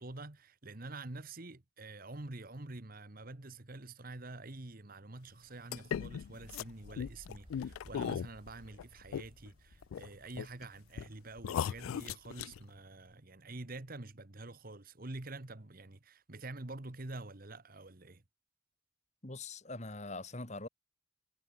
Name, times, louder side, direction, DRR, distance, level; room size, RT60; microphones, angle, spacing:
voice 1, 0.0-18.2, right 2 dB, 45° right, 1.4 m, -47 dB
sound 1, 5.5-13.2, right 1 dB, 25° right, 7.9 m, -72 dB
sound 2, 5.7-9.5 9.8-10.6 11.0-11.1 11.4-12.6, left 8 dB, 80° left, 0.3 m, -38 dB
sound 3, 7.0-13.1, equal, 10° left, 1.6 m, -59 dB
voice 2, 19.2-20.7, left 2 dB, 35° left, 2.4 m, -43 dB
head